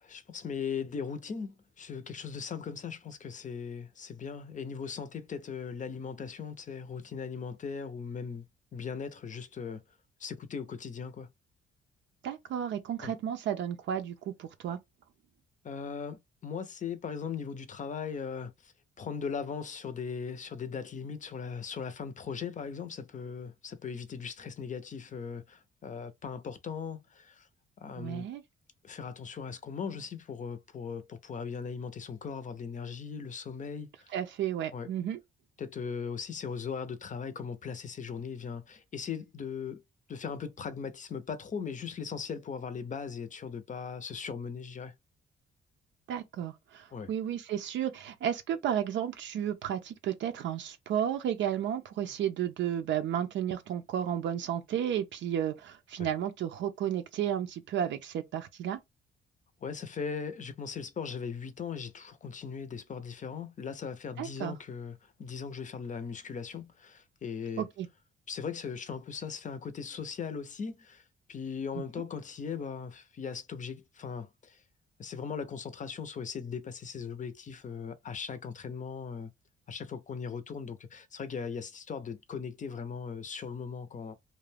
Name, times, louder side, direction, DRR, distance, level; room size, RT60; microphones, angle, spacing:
voice 1, 0.0-8.5 8.7-9.8 10.2-11.3 13.0-13.1 15.6-18.7 19.0-27.5 27.8-28.3 28.8-34.2 34.7-34.9 35.6-39.8 40.1-44.9 46.9-47.1 52.0-52.1 56.0-56.1 59.6-67.7 68.3-74.6 75.0-79.3 79.7-84.1, left 6 dB, 40° left, 0.6 m, -39 dB
voice 2, 12.2-14.8 28.0-28.4 34.1-35.2 46.1-58.8 64.2-64.5 67.6-67.9 71.8-71.9, right 10 dB, 70° right, 0.5 m, -33 dB
2.4 x 2.2 x 3.3 m
cardioid pair, 90°, 20 cm